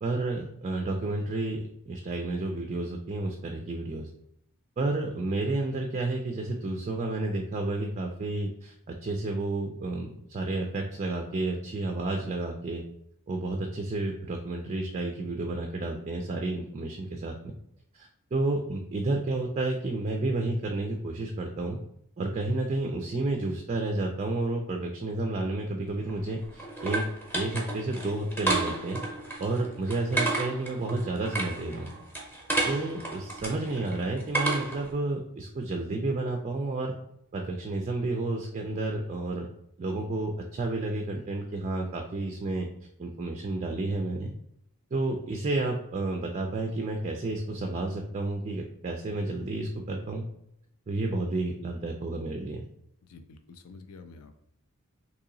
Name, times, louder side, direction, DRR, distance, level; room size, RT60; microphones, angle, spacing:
voice 1, 0.0-4.1 4.8-12.8 13.3-17.5 17.9-21.8 22.2-27.0 27.3-29.0 29.4-31.9 32.6-37.0 37.3-39.5 39.8-42.7 43.0-44.3 44.9-50.2 50.9-52.6, right 2 dB, 30° right, 2 dB, 0.3 m, -31 dB
sound 1, 25.9-34.9, right 2 dB, 5° left, 0.8 m, -32 dB
voice 2, 53.0-54.4, left 4 dB, 80° left, 7 dB, 0.4 m, -49 dB
3.0 x 2.8 x 3.8 m, 0.75 s
head